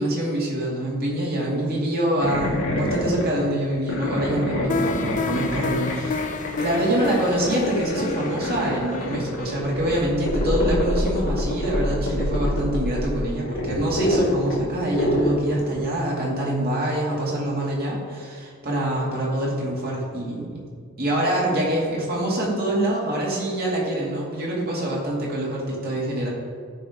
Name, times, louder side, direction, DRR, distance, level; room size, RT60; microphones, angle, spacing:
voice 1, 0.0-6.2 6.6-20.7 21.0-26.3, right 1 dB, 45° right, -4 dB, 2.6 m, -25 dB
sound 1, 2.2-16.0, left 1 dB, 90° left, 2.3 m, -27 dB
sound 2, 4.7-11.5, left 4 dB, 35° left, 0.4 m, -32 dB
13.5 x 5.6 x 3.7 m, 2.1 s
head